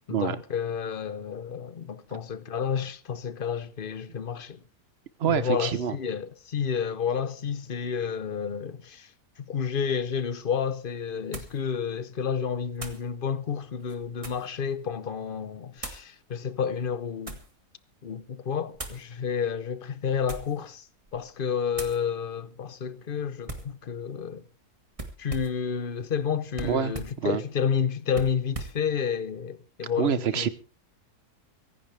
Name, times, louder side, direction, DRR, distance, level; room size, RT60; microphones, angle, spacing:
voice 1, 0.1-4.6 5.3-9.1 9.4-17.4 18.0-20.9 21.1-24.4 25.2-30.5, left 7 dB, 40° left, 0.9 m, -30 dB
voice 2, 5.2-6.0 26.6-26.9 27.2-27.4 30.0-30.5, right 7 dB, 45° right, 1.0 m, -26 dB
sound 1, 10.2-10.3 11.3-11.6 12.8-13.1 13.8-14.5 15.8-16.1 16.8-17.5 18.7-19.1 20.1-20.6 21.0-21.3 21.7-22.0 23.5-23.8 24.9-25.6 26.5-27.2 28.1-28.8, right 2 dB, 20° right, 1.8 m, -39 dB
24.0 x 11.0 x 3.4 m
omnidirectional pair, 1.7 m